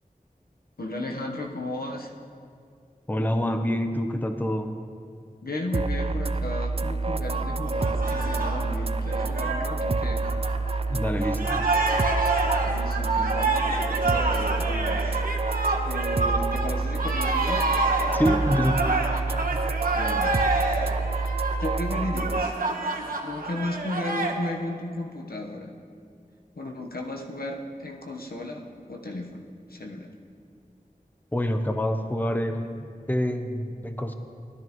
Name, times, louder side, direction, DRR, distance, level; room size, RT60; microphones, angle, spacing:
voice 1, 0.8-2.1 5.4-10.3 12.6-15.2 15.8-17.7 19.9-20.4 21.6-22.8 23.2-25.8 26.6-30.1, left 1 dB, 85° left, 1 dB, 1.1 m, -34 dB
voice 2, 3.1-4.7 10.9-11.6 18.1-18.9 31.3-34.1, equal, 10° left, 6 dB, 0.8 m, -26 dB
sound 1, 5.7-22.4, right 3 dB, 40° right, 0.4 m, -28 dB
sound 2, 7.6-10.9 11.2-24.4, right 3 dB, 75° right, 1.3 m, -28 dB
17.5 x 12.5 x 3.1 m, 2.3 s
wide cardioid pair, 50°, 15 cm